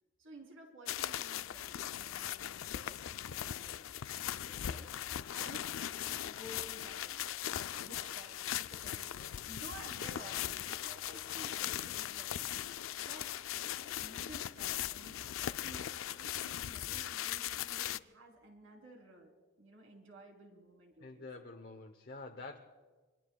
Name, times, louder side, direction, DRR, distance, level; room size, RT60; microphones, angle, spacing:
voice 1, 0.2-12.6 13.0-21.3, right 1 dB, 75° right, 2 dB, 3.5 m, -54 dB
sound 1, 0.9-18.0, left 11 dB, 80° left, 0.4 m, -39 dB
voice 2, 21.0-22.6, left 3 dB, 50° left, 3 dB, 0.8 m, -47 dB
27.0 x 23.0 x 2.3 m, 1.4 s
head